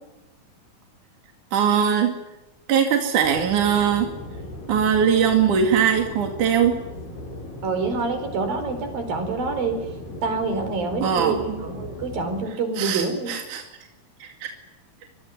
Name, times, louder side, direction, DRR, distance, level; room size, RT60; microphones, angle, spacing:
voice 1, 1.5-2.1 2.7-4.1 4.7-6.8 11.0-11.6 12.8-13.6 14.2-14.5, right 8 dB, 60° right, 4 dB, 3.6 m, -21 dB
sound 1, 3.2-12.4, left 2 dB, 75° left, 8.9 m, -38 dB
voice 2, 7.6-9.8 10.2-13.3, right 4 dB, 80° right, 8 dB, 6.3 m, -26 dB
25.5 x 22.5 x 9.6 m, 0.97 s
omnidirectional pair, 4.1 m